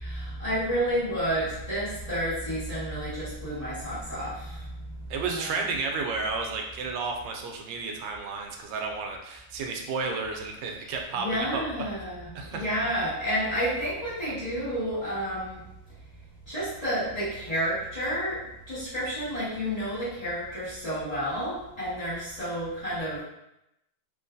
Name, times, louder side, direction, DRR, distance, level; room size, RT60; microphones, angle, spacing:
voice 1, 0.0-5.5 11.1-15.6 16.5-18.4 18.7-23.2, equal, 20° left, -11 dB, 1.3 m, -30 dB
voice 2, 5.1-11.6 12.3-12.7, right 4 dB, 75° right, 2 dB, 1.1 m, -32 dB
3.1 x 3.0 x 2.5 m, 0.85 s
omnidirectional pair, 2.2 m